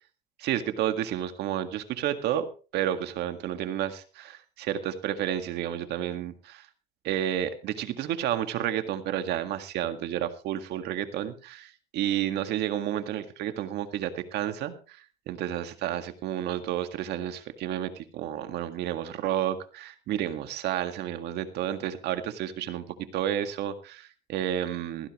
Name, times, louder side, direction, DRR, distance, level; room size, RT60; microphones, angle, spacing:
voice 1, 0.4-2.4 2.7-6.7 7.0-25.1, right 11 dB, 80° right, 8 dB, 1.8 m, -31 dB
16.0 x 16.0 x 3.1 m, 0.36 s
cardioid pair, 110°, 17 cm